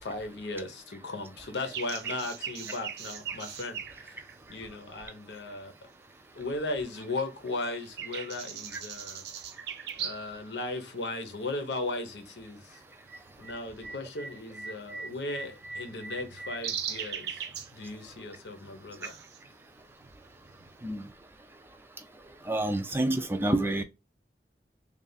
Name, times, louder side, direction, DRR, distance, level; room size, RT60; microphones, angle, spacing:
voice 1, 0.0-4.2 4.5-5.7 6.3-9.3 10.0-12.8 13.4-17.5 17.7-19.2, left 2 dB, 85° left, 0.9 m, -37 dB
sound 1, 1.6-5.6 6.1-6.9 7.2-10.4 10.7-10.8 11.5-11.8 12.1-21.1, right 7 dB, 75° right, 0.5 m, -40 dB
voice 2, 22.5-23.8, right 1 dB, 15° right, 0.3 m, -27 dB
3.4 x 2.4 x 3.9 m
head